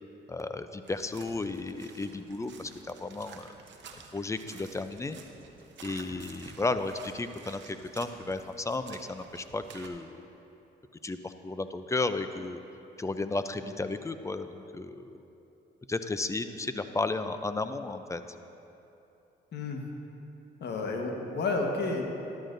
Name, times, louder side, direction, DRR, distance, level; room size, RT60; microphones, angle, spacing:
voice 1, 0.3-3.5 4.1-5.2 5.8-10.1 11.0-12.6 13.0-15.2 15.9-18.2, left 3 dB, 15° left, 10 dB, 0.5 m, -33 dB
sound 1, 0.8-9.9, right 5 dB, 65° right, 0.9 m, -51 dB
sound 2, 3.7-3.8 4.0-4.1 4.4-4.5 5.1-5.8 6.1-6.7 7.1-7.2 7.8-8.4, right 3 dB, 25° right, 1.1 m, -56 dB
voice 2, 19.5-19.8 20.6-22.0, left 3 dB, 60° left, 1 dB, 1.3 m, -31 dB
13.0 x 12.0 x 2.6 m, 2.9 s
cardioid pair, 90°, 20 cm